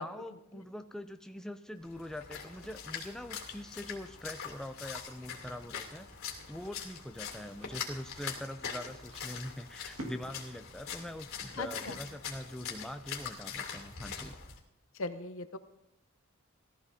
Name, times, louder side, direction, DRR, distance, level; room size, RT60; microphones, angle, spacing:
voice 1, 0.0-6.1 6.5-14.4, left 1 dB, 5° left, 7 dB, 0.4 m, -43 dB
Splash splatter, 1.8-14.6, left 7 dB, 90° left, 2.4 m, -43 dB
sound 1, 2.4-13.3, right 1 dB, 80° right, 1.9 m, -54 dB
voice 2, 11.6-12.0 14.9-15.6, left 3 dB, 70° left, 11 dB, 0.8 m, -38 dB
18.0 x 13.5 x 2.7 m, 0.87 s
head